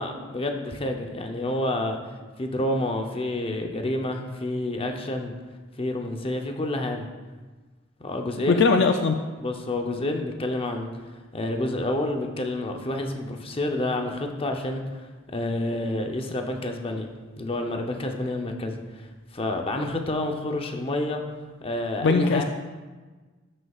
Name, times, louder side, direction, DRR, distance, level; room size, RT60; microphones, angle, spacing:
voice 1, 0.0-2.0 2.4-5.3 5.8-7.1 8.0-8.7 9.4-10.9 11.3-19.1 19.3-21.2 21.6-22.4, left 1 dB, 25° left, 3 dB, 0.7 m, -29 dB
voice 2, 8.5-9.1 22.0-22.4, left 4 dB, 60° left, 5 dB, 0.4 m, -20 dB
12.5 x 6.5 x 2.4 m, 1.3 s
head